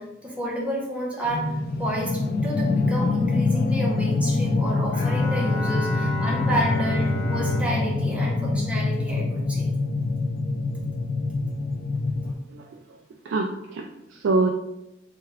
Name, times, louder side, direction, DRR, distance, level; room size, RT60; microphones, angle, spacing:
voice 1, 0.0-9.7 12.2-12.3, equal, 5° right, -3 dB, 0.7 m, -30 dB
sound 1, 1.3-12.3, left 3 dB, 55° left, 0.3 m, -25 dB
Bowed string instrument, 4.9-9.4, equal, 85° left, 1.1 m, -33 dB
voice 2, 13.3-14.5, right 3 dB, 70° right, 3 dB, 0.3 m, -25 dB
3.3 x 2.3 x 3.4 m, 0.89 s
head